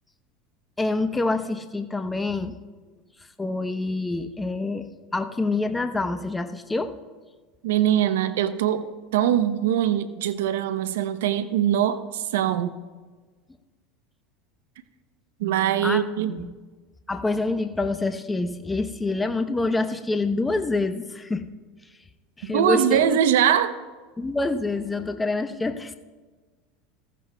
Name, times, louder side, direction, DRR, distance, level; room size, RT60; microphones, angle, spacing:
voice 1, 0.8-2.6 3.4-7.0 15.8-16.0 16.4-16.5 17.1-21.5 22.4-23.2 24.2-26.0, left 3 dB, 15° left, 9 dB, 0.8 m, -26 dB
voice 2, 7.6-8.9 9.1-12.7 15.4-16.4 22.4-23.8, right 10 dB, 80° right, 12 dB, 0.7 m, -22 dB
18.5 x 14.5 x 2.3 m, 1.4 s
hypercardioid pair, 100°, 0 cm